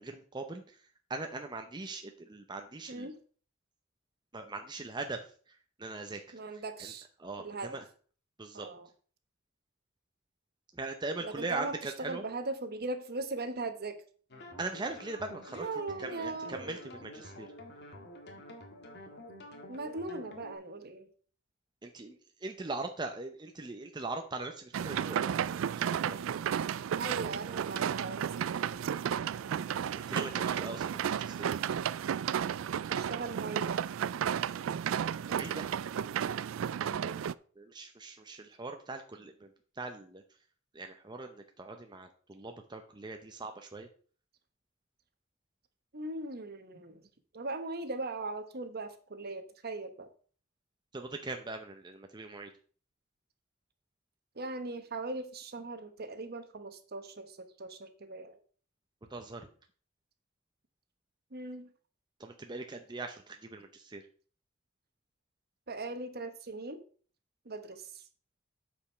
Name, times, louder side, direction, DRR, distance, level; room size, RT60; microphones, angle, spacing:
voice 1, 0.0-3.1 4.3-6.9 7.2-7.9 8.4-8.7 10.7-12.2 14.6-15.7 16.0-17.5 21.8-26.2 29.9-31.6 35.3-35.7 37.6-40.2 40.7-43.9 50.9-52.5 59.1-59.5 62.2-64.1, right 3 dB, 20° right, 4 dB, 0.7 m, -41 dB
voice 2, 6.3-7.1 7.4-7.8 8.5-8.9 11.2-11.7 12.0-14.0 15.5-16.8 19.7-21.1 26.9-28.9 32.9-33.8 36.8-37.2 45.9-47.0 47.3-50.1 54.4-58.4 61.3-61.7 65.7-66.8 67.4-68.0, right 2 dB, 50° right, 8 dB, 1.2 m, -39 dB
sound 1, 14.3-20.6, left 1 dB, 55° left, 1.9 m, -49 dB
sound 2, 24.7-37.3, right 8 dB, 70° right, 0.3 m, -33 dB
8.5 x 5.2 x 5.8 m, 0.43 s
head